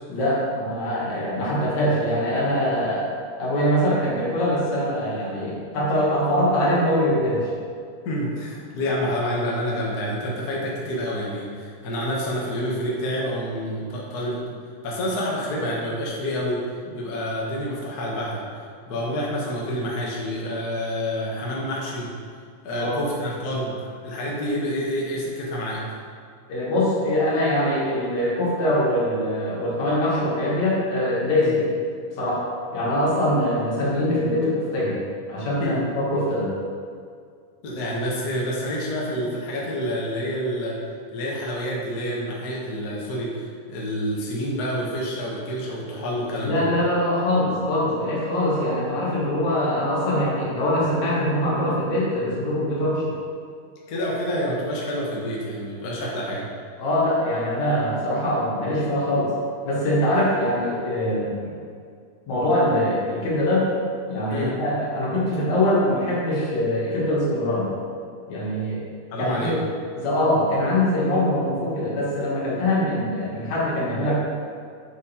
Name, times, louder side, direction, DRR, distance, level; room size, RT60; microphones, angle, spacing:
voice 1, 0.1-7.5 8.7-8.8 22.7-23.0 26.5-31.6 32.2-32.4 32.7-35.0 35.3-36.5 46.4-53.1 56.8-59.3 59.6-61.5 62.3-63.7 64.1-67.7 68.3-68.8 69.2-69.5 70.0-74.1, left 1 dB, 60° left, -6 dB, 2.8 m, -23 dB
voice 2, 8.0-14.5 14.8-18.4 18.9-22.1 22.6-25.8 31.4-31.5 35.6-35.9 37.6-40.8 41.1-46.6 53.9-56.5 64.3-64.5 69.1-69.6, equal, 90° left, -4 dB, 0.8 m, -28 dB
7.9 x 5.0 x 4.3 m, 2.2 s
omnidirectional pair, 3.9 m